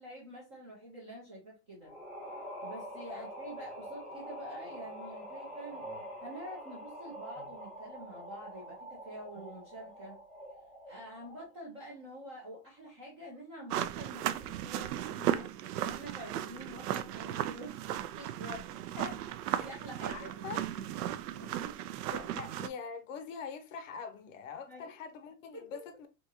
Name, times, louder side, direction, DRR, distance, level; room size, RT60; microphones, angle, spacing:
voice 1, 0.0-1.9 2.6-5.9 6.2-10.2 10.9-17.7 18.2-18.7 19.5-21.0 21.3-21.7 24.7-24.9 25.5-25.8, right 1 dB, 20° right, 0.4 m, -47 dB
sound 1, 1.8-11.6, equal, ahead, 0.9 m, -45 dB
sound 2, 13.7-22.7, right 12 dB, 85° right, 0.5 m, -36 dB
voice 2, 20.1-20.6 22.1-26.1, left 6 dB, 60° left, 0.6 m, -43 dB
3.5 x 2.8 x 2.7 m
supercardioid pair, 175°, 45 cm